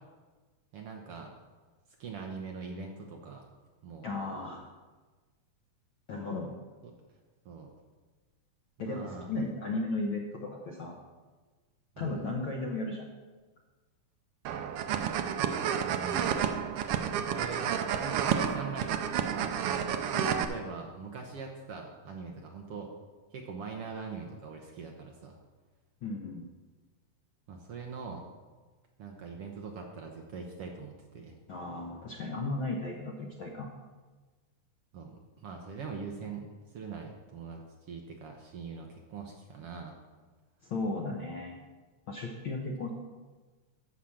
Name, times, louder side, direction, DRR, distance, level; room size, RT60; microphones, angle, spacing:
voice 1, 0.7-1.3 2.0-3.5 3.8-4.1 6.8-6.9 7.4-7.7 8.8-9.3 12.0-12.2 14.9-15.1 15.8-16.3 17.3-19.9 20.5-22.9 23.3-25.4 27.5-28.3 29.0-31.4 34.9-40.0, right 5 dB, 65° right, 2 dB, 1.6 m, -42 dB
voice 2, 4.0-4.7 6.1-6.5 8.8-11.0 12.0-13.1 20.1-20.5 26.0-26.4 31.5-33.7 40.6-41.6 42.1-42.9, left 2 dB, 65° left, 0 dB, 1.3 m, -35 dB
sound 1, 14.4-20.4, right 8 dB, 85° right, 1.3 m, -30 dB
13.5 x 5.0 x 7.2 m, 1.3 s
omnidirectional pair, 3.5 m